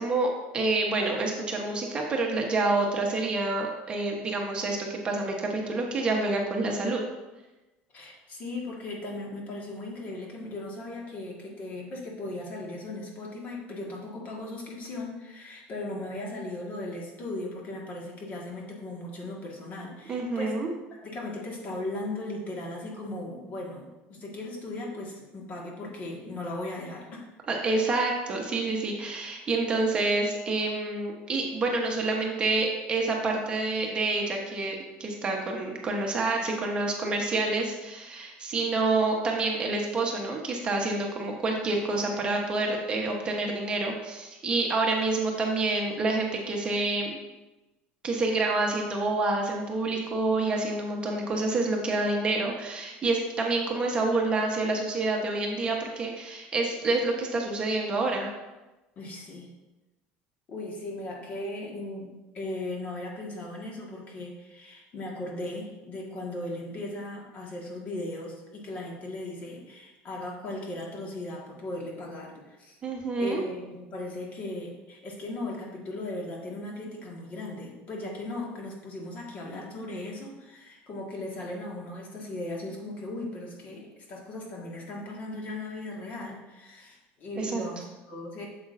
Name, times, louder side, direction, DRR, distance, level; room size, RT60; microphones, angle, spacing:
voice 1, 0.0-7.0 20.1-20.7 27.5-47.2 48.0-58.3 72.8-73.4 87.4-87.6, right 3 dB, 25° right, 0 dB, 1.0 m, -28 dB
voice 2, 7.9-20.6 20.9-27.2 58.9-59.5 60.5-72.8 73.2-88.5, left 2 dB, 40° left, -1 dB, 1.8 m, -37 dB
8.2 x 7.3 x 2.6 m, 1.1 s
cardioid pair, 145°, 4 cm